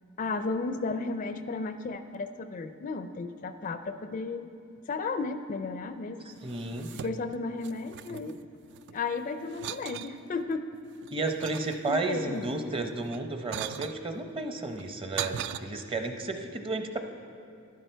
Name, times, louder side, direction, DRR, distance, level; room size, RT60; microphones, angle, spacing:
voice 1, 0.2-4.5 4.9-6.2 6.9-8.4 8.9-10.7 11.9-12.6, left 3 dB, 40° left, 10 dB, 0.4 m, -34 dB
voice 2, 6.3-6.9 11.1-17.0, right 3 dB, 25° right, 5 dB, 0.7 m, -33 dB
sound 1, 6.4-7.4 7.6-9.0 9.5-10.1 10.7-12.2 13.0-14.0 14.7-15.6, right 10 dB, 55° right, 0.3 m, -39 dB
12.0 x 11.0 x 4.5 m, 2.4 s
head